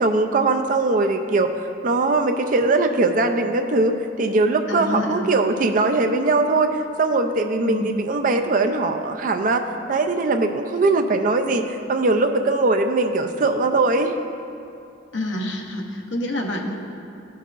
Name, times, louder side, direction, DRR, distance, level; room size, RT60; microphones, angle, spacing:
voice 1, 0.0-1.5 1.8-9.6 9.9-14.1, right 3 dB, 40° right, 6 dB, 0.4 m, -20 dB
voice 2, 4.7-5.3 7.6-7.9 15.1-16.8, left 1 dB, 70° left, 1 dB, 0.8 m, -27 dB
12.5 x 5.4 x 2.5 m, 2.5 s
head